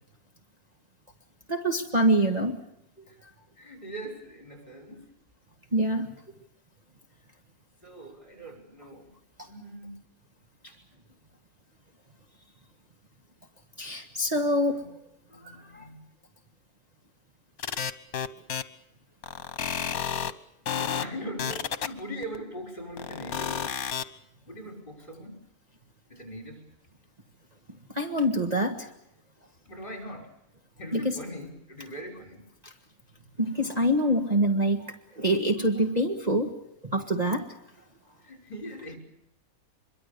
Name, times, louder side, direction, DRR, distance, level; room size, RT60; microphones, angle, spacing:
voice 1, 1.5-2.6 5.7-6.1 9.4-9.5 13.8-14.8 15.7-15.9 27.9-28.9 30.9-31.2 32.6-32.7 33.4-36.5 36.8-37.5, right 1 dB, 30° right, 2 dB, 1.9 m, -25 dB
voice 2, 3.6-5.1 7.8-9.1 9.4-10.0 10.6-10.8 14.3-14.9 15.3-16.0 20.7-23.6 24.5-25.5 26.1-26.6 29.7-30.3 30.8-32.5 38.2-39.0, equal, 35° left, 4 dB, 6.0 m, -41 dB
sound 1, 17.6-18.6 19.2-20.3 20.7-21.0 21.4-22.4 23.0-24.0, left 8 dB, 75° left, 1.6 m, -30 dB
25.5 x 23.0 x 6.9 m, 0.82 s
omnidirectional pair, 1.5 m